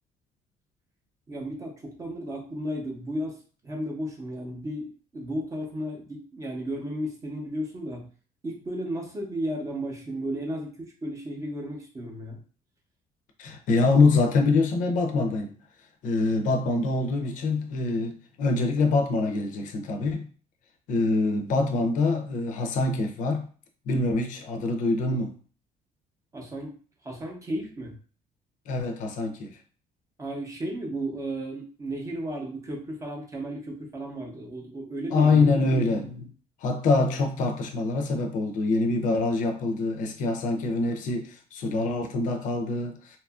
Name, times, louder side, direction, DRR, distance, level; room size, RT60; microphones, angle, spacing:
voice 1, 1.3-8.1 8.4-12.4 26.3-26.8 27.0-27.9 30.2-35.6, right 1 dB, 20° right, 0.6 m, -34 dB
voice 2, 13.4-15.5 16.0-20.3 20.9-23.5 23.9-25.3 28.7-29.6 35.1-36.3 36.6-43.2, left 3 dB, 60° left, 0.5 m, -25 dB
2.7 x 2.4 x 2.3 m
cardioid pair, 155°, 15 cm